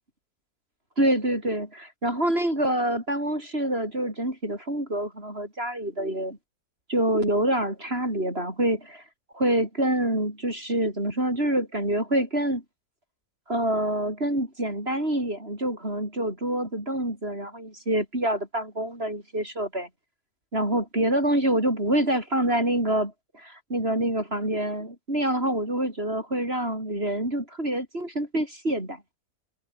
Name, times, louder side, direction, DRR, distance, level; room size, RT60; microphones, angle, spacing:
voice 1, 1.0-6.4 6.9-9.0 9.3-12.6 13.5-19.9 20.5-29.0, right 1 dB, 40° right, 8.0 m, -26 dB
omnidirectional pair, 1.7 m